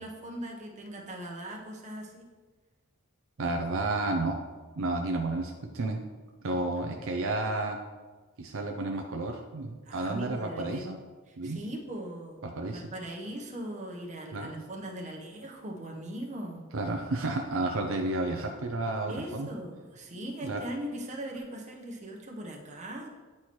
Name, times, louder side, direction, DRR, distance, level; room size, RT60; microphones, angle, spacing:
voice 1, 0.0-2.2 9.8-10.9 11.3-12.4 12.7-16.6 19.1-23.1, right 1 dB, 35° right, -1 dB, 1.0 m, -40 dB
voice 2, 3.4-4.4 4.8-6.0 6.4-7.8 8.4-11.0 11.4-11.6 12.4-12.8 14.3-14.5 16.7-19.5 20.4-20.6, right 2 dB, 70° right, 3 dB, 0.6 m, -31 dB
9.7 x 4.3 x 3.1 m, 1.3 s
head